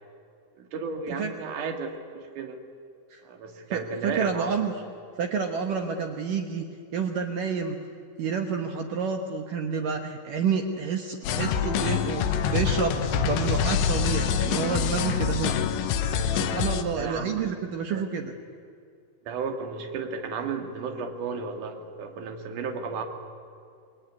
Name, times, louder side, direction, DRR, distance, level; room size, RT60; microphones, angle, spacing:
voice 1, 0.6-2.6 3.2-4.5 16.9-17.5 17.9-18.1 19.3-23.0, right 5 dB, 50° right, 4 dB, 2.9 m, -33 dB
voice 2, 3.7-4.7 5.2-6.7 6.9-7.8 8.2-15.5 16.3-18.3, right 6 dB, 70° right, 4 dB, 2.1 m, -29 dB
sound 1, 11.2-16.8, left 7 dB, 75° left, 3.5 m, -26 dB
27.5 x 21.5 x 9.6 m, 2.4 s
omnidirectional pair, 5.6 m